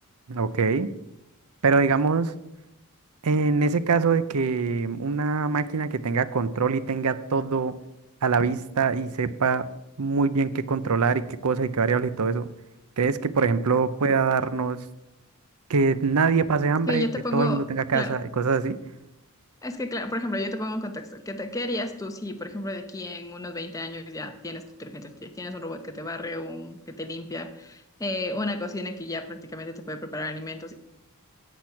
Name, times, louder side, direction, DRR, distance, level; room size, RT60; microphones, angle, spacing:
voice 1, 0.3-0.9 1.6-2.3 3.2-7.8 8.2-9.7 10.0-12.5 13.0-14.8 15.7-17.1 17.3-18.8, right 4 dB, 80° right, 16 dB, 0.6 m, -24 dB
voice 2, 16.9-17.6 17.9-18.2 19.6-30.8, left 1 dB, 15° left, 5 dB, 0.9 m, -32 dB
10.5 x 8.1 x 5.8 m, 0.90 s
head